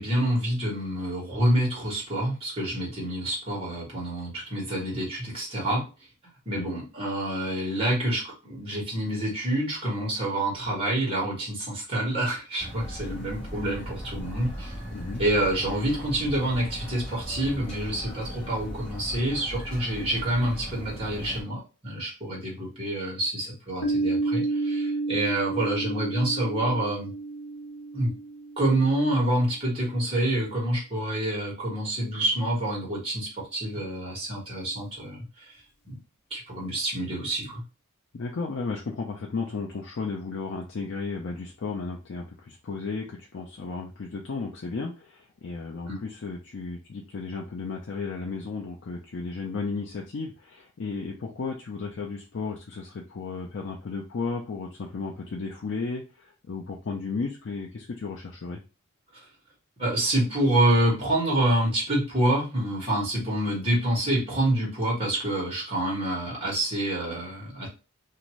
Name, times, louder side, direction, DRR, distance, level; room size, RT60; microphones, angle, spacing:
voice 1, 0.0-5.8 6.4-14.7 15.2-27.1 27.9-28.1 28.6-35.2 35.8-36.0 36.3-37.6 45.9-46.0 59.8-67.7, right 1 dB, 25° right, -5 dB, 1.3 m, -27 dB
sound 1, 12.6-21.4, equal, 25° left, 1.1 m, -38 dB
Piano, 23.8-29.2, right 3 dB, 80° left, 0.9 m, -30 dB
voice 2, 38.1-58.6, left 4 dB, 55° left, 0 dB, 0.4 m, -34 dB
2.6 x 2.5 x 3.0 m, 0.31 s
head